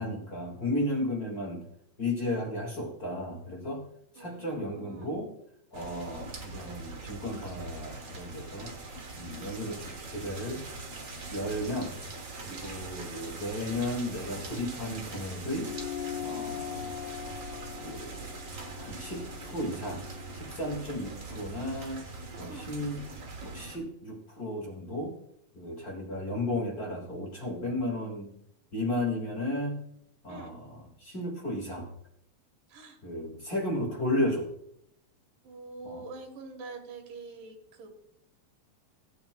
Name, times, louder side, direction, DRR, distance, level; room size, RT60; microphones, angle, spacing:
voice 1, 0.0-1.6 2.0-3.8 4.2-5.3 5.7-8.7 9.1-10.6 11.3-12.0 12.4-15.7 16.2-16.9 17.8-18.3 18.8-20.0 20.3-22.0 22.4-23.0 23.4-25.1 25.5-28.3 28.7-29.8 30.2-31.9 33.0-34.5 35.8-36.0, left 1 dB, 35° left, -1 dB, 1.9 m, -34 dB
voice 2, 4.2-5.2 12.5-12.8 22.3-22.7 30.3-30.5 32.7-33.0 35.4-37.9, right 3 dB, 90° right, 4 dB, 3.1 m, -45 dB
sound 1, 5.7-23.8, right 3 dB, 65° right, 0.8 m, -42 dB
sound 2, 15.6-20.4, left 10 dB, 75° left, 2.2 m, -40 dB
16.5 x 8.7 x 2.2 m, 0.73 s
omnidirectional pair, 3.6 m